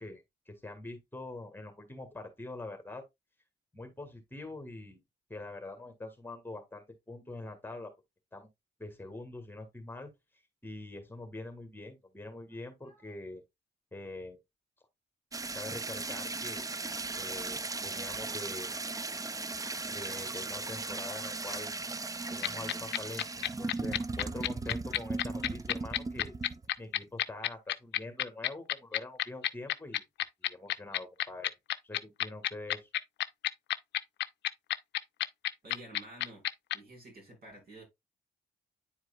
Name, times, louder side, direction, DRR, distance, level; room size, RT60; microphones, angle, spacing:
voice 1, 0.0-3.0 3.7-5.0 5.3-7.9 8.3-8.5 8.8-10.1 10.6-13.4 13.9-14.4 15.5-16.7 17.2-18.7 19.9-21.8 22.3-26.3 26.8-30.0 30.4-31.6 31.8-32.9, left 2 dB, 10° left, 1.8 m, -44 dB
sound 1, 15.3-26.7, right 3 dB, 20° right, 0.4 m, -37 dB
sound 2, 22.4-36.8, left 13 dB, 80° left, 0.5 m, -30 dB
voice 2, 35.6-36.4 36.7-37.8, right 1 dB, 60° right, 4.8 m, -50 dB
9.6 x 4.6 x 2.4 m
cardioid pair, 65°, 18 cm